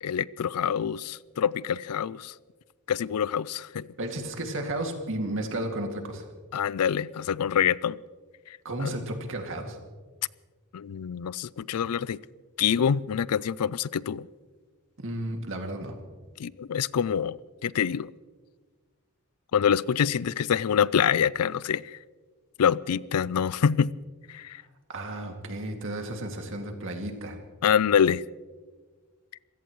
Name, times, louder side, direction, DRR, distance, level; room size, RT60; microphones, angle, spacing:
voice 1, 0.0-2.3 2.9-3.9 6.5-8.0 8.8-8.9 10.7-12.2 12.6-14.3 16.4-17.4 17.6-18.1 19.5-22.0 22.6-23.9 24.3-24.6 27.6-28.2, left 8 dB, 85° left, 0.4 m, -26 dB
voice 2, 4.0-6.3 8.6-9.8 15.0-16.0 24.9-27.4, right 1 dB, 60° right, 2.3 m, -33 dB
27.0 x 16.5 x 3.1 m
head